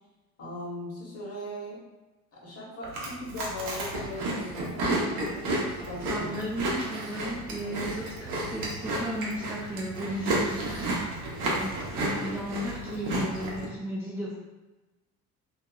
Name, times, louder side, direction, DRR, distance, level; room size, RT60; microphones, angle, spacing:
voice 1, 0.4-1.8 2.3-6.3 7.2-7.4 7.6-7.9 11.2-11.6, left 1 dB, 35° left, -5 dB, 1.1 m, -39 dB
Chewing mastication, 2.8-13.6, right 1 dB, 65° right, 0.8 m, -32 dB
voice 2, 6.1-14.4, equal, 5° right, -7 dB, 0.4 m, -35 dB
2.7 x 2.5 x 2.3 m, 1.1 s
figure-of-eight pair, 55°, 43 cm